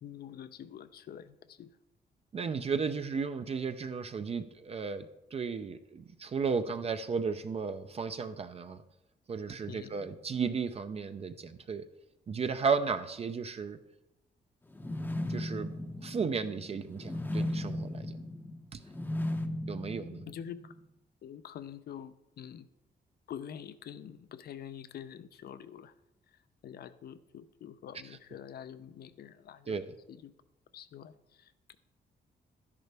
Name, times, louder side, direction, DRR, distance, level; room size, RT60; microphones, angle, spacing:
voice 1, 0.0-1.8 9.7-10.1 20.3-20.8 21.2-22.7 23.3-25.9 26.3-29.8 30.1-30.3 30.7-31.8, left 9 dB, 60° left, 13 dB, 0.6 m, -46 dB
voice 2, 2.3-8.8 9.3-11.8 12.3-13.8 15.3-15.7 16.0-18.1 18.7-18.8 19.7-20.2 29.7-29.8, right 5 dB, 35° right, 9 dB, 0.5 m, -34 dB
sound 1, 14.7-20.8, left 1 dB, 10° left, 0.7 m, -36 dB
12.0 x 10.5 x 3.4 m, 0.92 s
wide cardioid pair, 160°, 18 cm